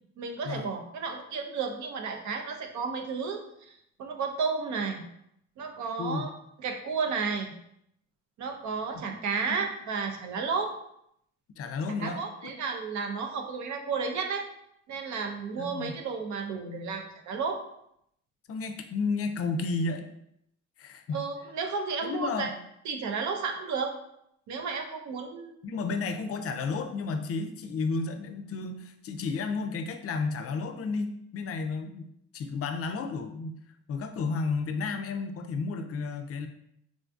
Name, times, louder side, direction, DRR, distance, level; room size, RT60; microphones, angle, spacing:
voice 1, 0.2-5.0 5.6-6.3 6.6-7.5 8.4-10.8 12.0-14.5 14.9-17.6 21.1-22.5 22.8-23.9 24.5-25.5 25.9-26.0, right 5 dB, 70° right, 4 dB, 0.6 m, -32 dB
voice 2, 6.0-6.3 11.6-12.5 15.6-16.0 18.5-20.1 20.8-21.2 22.0-22.5 25.6-33.6 33.9-36.5, left 4 dB, 50° left, 7 dB, 0.4 m, -32 dB
3.7 x 2.3 x 2.5 m, 0.75 s
cardioid pair, 90°, 30 cm